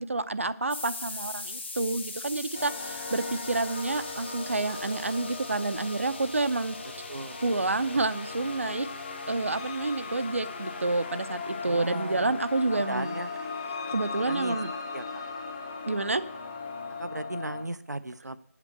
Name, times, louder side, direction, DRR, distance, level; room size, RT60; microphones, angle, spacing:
voice 1, 0.0-6.8 7.4-8.9 9.3-13.2 13.9-14.7 15.9-16.2, right 3 dB, 50° right, 13 dB, 0.7 m, -29 dB
sound 1, 0.7-17.0, left 3 dB, 40° left, 1.0 m, -44 dB
sound 2, 2.5-17.6, left 4 dB, 20° left, 0.7 m, -38 dB
voice 2, 7.1-7.4 11.6-12.4 12.7-13.3 14.2-14.6 14.9-15.2 17.0-18.4, right 2 dB, 85° right, 13 dB, 0.8 m, -36 dB
8.6 x 8.3 x 7.2 m, 0.63 s
figure-of-eight pair, 170°, 9 cm